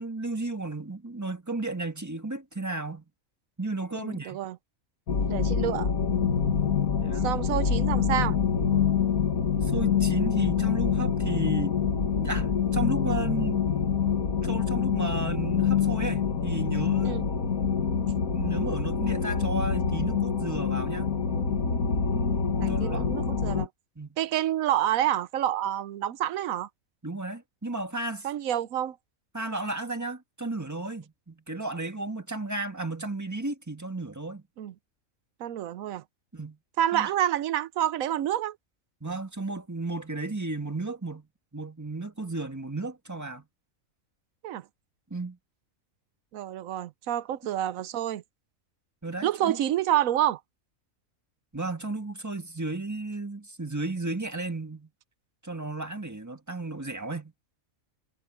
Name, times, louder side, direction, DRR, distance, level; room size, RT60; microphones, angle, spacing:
voice 1, 0.0-3.0 3.6-4.4 7.0-7.3 9.6-11.8 12.2-13.6 14.4-17.2 18.3-21.1 22.7-23.1 24.0-24.1 27.0-28.3 29.3-34.4 36.3-36.6 36.9-37.1 39.0-41.3 41.5-43.4 45.1-45.4 49.0-49.6 51.5-54.9 55.4-57.3, right 2 dB, 15° right, 1.6 m, -34 dB
voice 2, 3.9-4.6 5.3-5.9 7.2-8.4 17.0-17.2 22.1-23.7 24.2-26.7 28.2-29.0 34.6-34.7 35.4-36.0 36.8-38.6 44.4-44.6 46.3-48.2 49.2-50.4, right 11 dB, 80° right, 1.1 m, -28 dB
sound 1, 5.1-23.7, left 6 dB, 85° left, 2.1 m, -26 dB
omnidirectional pair, 1.4 m